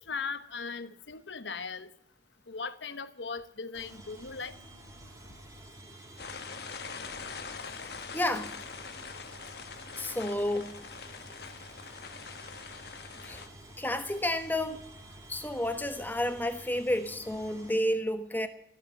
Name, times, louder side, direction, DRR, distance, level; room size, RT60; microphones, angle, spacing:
voice 1, 0.1-1.9 2.5-4.5, left 5 dB, 85° left, 1.1 m, -38 dB
sound 1, 3.7-17.8, right 1 dB, 20° right, 3.4 m, -50 dB
sound 2, 6.2-13.5, left 5 dB, 60° left, 1.3 m, -43 dB
voice 2, 8.1-8.5 10.0-10.8 13.2-13.4 13.8-14.8 15.3-18.5, left 1 dB, 10° left, 1.0 m, -31 dB
14.5 x 8.9 x 9.6 m
head